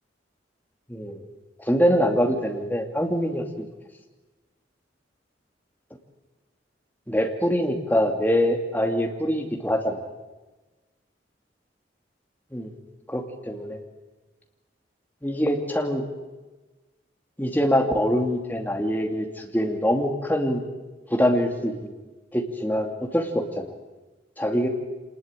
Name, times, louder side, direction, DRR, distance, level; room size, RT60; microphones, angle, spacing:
voice 1, 0.9-1.3 1.6-3.7 7.1-10.0 12.5-12.7 13.1-13.8 15.2-16.0 17.4-20.6 21.1-21.8 22.3-23.7 24.4-24.7, equal, 10° left, 3 dB, 2.6 m, -24 dB
26.5 x 20.0 x 9.0 m, 1.2 s
head